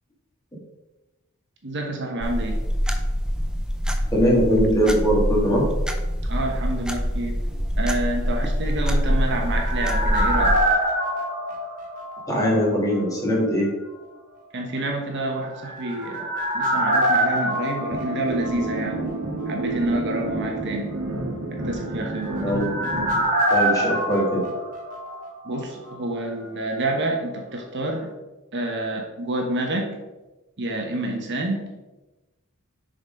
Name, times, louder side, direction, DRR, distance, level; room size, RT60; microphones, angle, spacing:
voice 1, 1.6-2.6 6.2-7.4 7.8-10.6 14.5-19.0 19.5-20.9 21.6-22.6 25.4-28.1 28.5-29.9 30.6-31.7, right 1 dB, 55° right, 1 dB, 1.1 m, -28 dB
sound 1, 2.2-10.6, equal, 5° right, 0.5 m, -25 dB
voice 2, 4.1-5.7 12.3-13.7 22.4-22.7 23.5-24.4, equal, 15° left, -5 dB, 2.2 m, -21 dB
sound 2, 8.8-12.7 12.9-13.0 15.4-19.1 19.4-19.5 21.8-25.6 25.9-26.0, right 1 dB, 35° right, 1.8 m, -25 dB
sound 3, 17.9-23.2, right 2 dB, 85° right, 1.7 m, -30 dB
6.6 x 4.1 x 5.2 m, 1.1 s
head